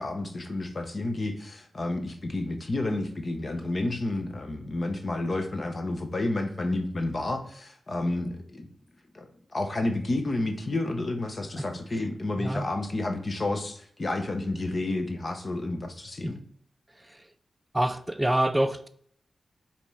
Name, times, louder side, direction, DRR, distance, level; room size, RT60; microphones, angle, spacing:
voice 1, 0.0-8.7 9.1-9.3 9.5-16.4, left 2 dB, 30° left, 0.8 m, -30 dB
voice 2, 17.7-18.9, right 1 dB, 10° right, 0.4 m, -26 dB
5.2 x 4.3 x 5.4 m
wide cardioid pair, 170°, 0 cm